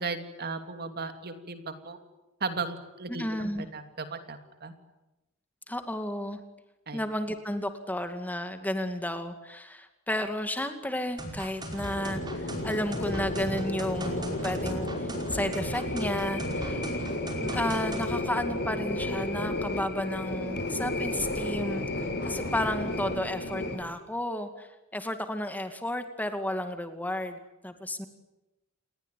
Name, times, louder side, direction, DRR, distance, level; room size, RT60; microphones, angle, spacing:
voice 1, 0.0-2.0 2.4-4.7 6.9-7.0 16.7-17.0, right 4 dB, 45° right, 8 dB, 2.9 m, -36 dB
voice 2, 3.1-3.7 5.7-6.4 6.9-16.8 17.4-27.4 27.6-28.1, left 1 dB, 10° left, 7 dB, 2.3 m, -32 dB
sound 1, 11.2-18.1, right 1 dB, 20° right, 5.5 m, -38 dB
sound 2, 11.7-23.8, left 1 dB, 50° left, 5.3 m, -32 dB
29.5 x 21.0 x 9.2 m, 1.0 s
head